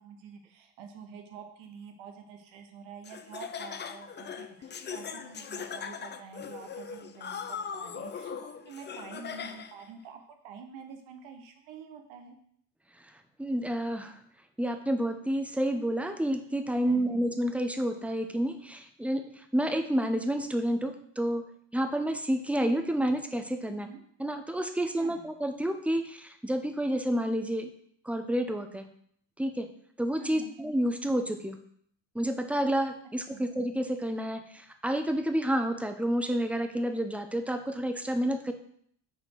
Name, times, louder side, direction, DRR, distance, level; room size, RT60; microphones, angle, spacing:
voice 1, 0.0-12.4 16.8-17.2 23.6-24.0 25.0-25.3 30.2-30.5 33.3-33.5, right 6 dB, 80° right, 5 dB, 1.2 m, -47 dB
Laughter, 3.0-9.9, left 7 dB, 25° left, 0.4 m, -40 dB
voice 2, 13.4-14.1 14.6-21.4 21.7-23.9 24.2-27.7 28.0-28.8 29.4-29.7 30.0-31.6 32.1-38.5, right 1 dB, 5° right, 7 dB, 0.7 m, -29 dB
6.5 x 4.4 x 4.6 m, 0.65 s
supercardioid pair, 85°, 47 cm